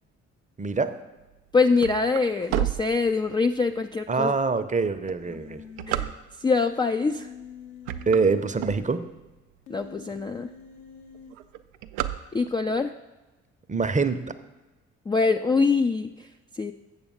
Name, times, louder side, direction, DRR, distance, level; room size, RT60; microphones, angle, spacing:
voice 1, 0.6-0.9 4.1-5.6 8.1-9.0 13.7-14.3, right 4 dB, 20° right, 10 dB, 0.7 m, -24 dB
sound 1, 1.3-3.6 4.2-4.3 4.9-6.6 7.3-7.5 7.8-9.3 9.8-9.9 10.1-10.2 10.5-10.9 11.1-12.8, right 13 dB, 80° right, 0.5 m, -31 dB
voice 2, 1.5-4.3 5.9-6.1 6.4-7.3 9.7-10.5 12.3-12.9 15.1-16.1 16.6-16.7, left 4 dB, 15° left, 6 dB, 0.3 m, -24 dB
Human voice, 5.2-6.1 7.1-8.9 9.7-11.3, left 7 dB, 75° left, 1.0 m, -45 dB
7.2 x 7.0 x 5.5 m, 1.1 s
hypercardioid pair, 45°, 35 cm